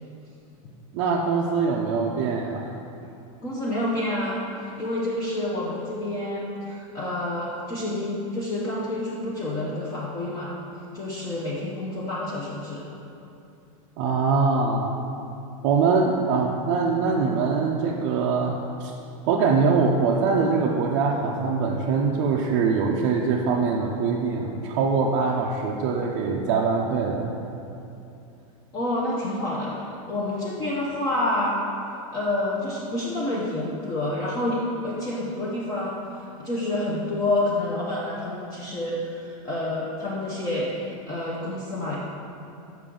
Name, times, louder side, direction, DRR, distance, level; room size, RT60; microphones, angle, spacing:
voice 1, 0.9-2.7 14.0-15.0 15.6-18.9 19.3-27.3, right 4 dB, 40° right, -2 dB, 0.5 m, -23 dB
voice 2, 3.4-10.5 10.9-12.8 28.7-29.8 30.1-31.6 32.1-42.1, left 1 dB, 20° left, -6 dB, 0.7 m, -28 dB
6.9 x 5.8 x 3.7 m, 2.8 s
supercardioid pair, 165°, 18 cm